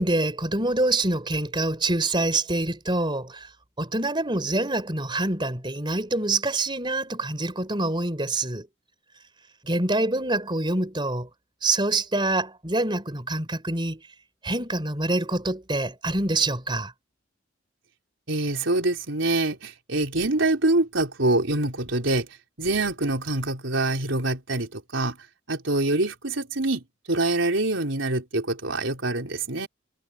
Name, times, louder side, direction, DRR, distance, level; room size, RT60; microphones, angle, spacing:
voice 1, 0.0-3.5 3.8-8.7 9.6-11.3 11.6-14.0 14.4-16.9, right 2 dB, 25° right, 4.0 m, -26 dB
voice 2, 18.3-22.3 22.6-25.2 25.5-29.7, right 2 dB, 75° right, 4.0 m, -25 dB
head